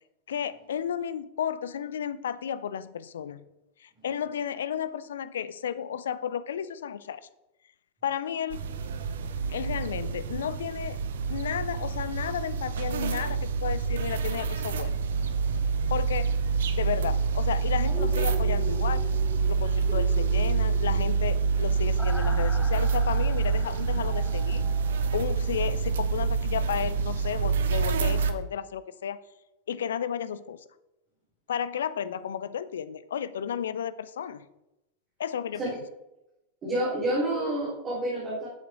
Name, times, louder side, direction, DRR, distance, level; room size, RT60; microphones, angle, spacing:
voice 1, 0.3-3.4 3.8-7.2 8.0-8.6 9.5-11.0 11.3-14.9 15.9-16.4 16.7-19.0 19.5-24.6 25.1-29.2 29.7-30.6 31.5-34.4 35.2-35.8, left 8 dB, 65° left, 16 dB, 0.6 m, -33 dB
sound 1, 8.5-28.3, right 5 dB, 60° right, 0.9 m, -27 dB
sound 2, 17.8-25.7 26.1-26.2, equal, 5° left, 1.4 m, -42 dB
voice 2, 36.6-38.5, right 1 dB, 25° right, -6 dB, 4.2 m, -28 dB
12.5 x 8.0 x 3.7 m, 0.92 s
figure-of-eight pair, 90°, 0 cm